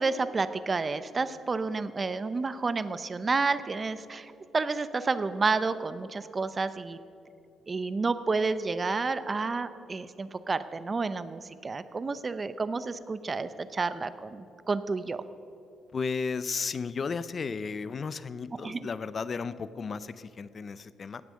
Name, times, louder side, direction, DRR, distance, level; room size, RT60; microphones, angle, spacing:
voice 1, 0.0-7.0 7.7-15.2 18.6-18.9, right 4 dB, 30° right, 13 dB, 0.7 m, -30 dB
voice 2, 15.9-21.2, left 5 dB, 45° left, 15 dB, 0.6 m, -34 dB
17.5 x 8.2 x 6.4 m, 2.7 s
cardioid pair, 90°, 0 cm